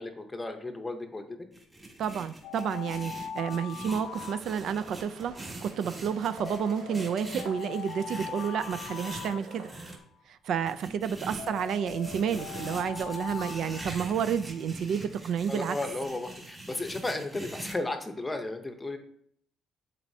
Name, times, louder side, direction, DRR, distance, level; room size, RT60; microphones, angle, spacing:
voice 1, 0.0-1.4 3.3-3.4 10.9-11.0 15.5-19.0, left 2 dB, 15° left, 6 dB, 0.7 m, -34 dB
sound 1, 1.5-10.0 10.7-17.7, right 2 dB, 15° right, 1.7 m, -43 dB
voice 2, 2.0-9.7 10.3-15.8, right 7 dB, 55° right, 12 dB, 0.4 m, -30 dB
Alarm, 2.4-5.0 6.4-10.0 11.4-14.6, left 9 dB, 70° left, 0.3 m, -42 dB
sound 2, 4.0-10.0, right 4 dB, 90° right, 1.2 m, -50 dB
11.0 x 4.2 x 2.7 m, 0.65 s
cardioid pair, 160°, 0 cm